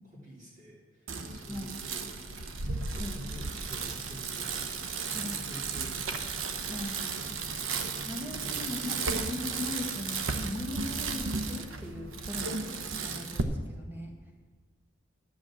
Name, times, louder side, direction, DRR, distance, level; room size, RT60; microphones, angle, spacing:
voice 1, 0.1-6.7 7.7-8.5, equal, 35° right, -4 dB, 2.8 m, -49 dB
Bicycle, 1.1-13.4, right 4 dB, 80° right, 0.8 m, -34 dB
voice 2, 6.7-7.0 8.0-14.1, left 2 dB, 10° right, 1 dB, 1.4 m, -39 dB
11.5 x 6.3 x 7.5 m, 1.4 s
head